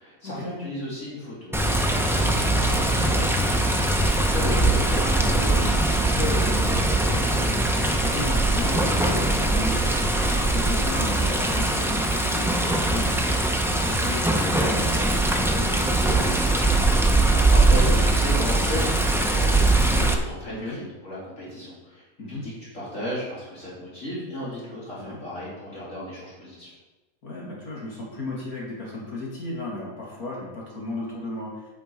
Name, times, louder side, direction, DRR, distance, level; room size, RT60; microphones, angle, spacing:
voice 1, 0.0-7.4 17.0-26.7, left 1 dB, 60° left, -8 dB, 3.3 m, -35 dB
Water, 1.5-20.1, right 2 dB, 5° right, 0.4 m, -21 dB
voice 2, 4.3-5.0 8.0-16.3 20.5-20.8 22.2-22.4 25.0-25.2 27.2-31.7, left 2 dB, 90° left, -4 dB, 2.8 m, -35 dB
9.1 x 7.7 x 4.5 m, 1.1 s
omnidirectional pair, 1.5 m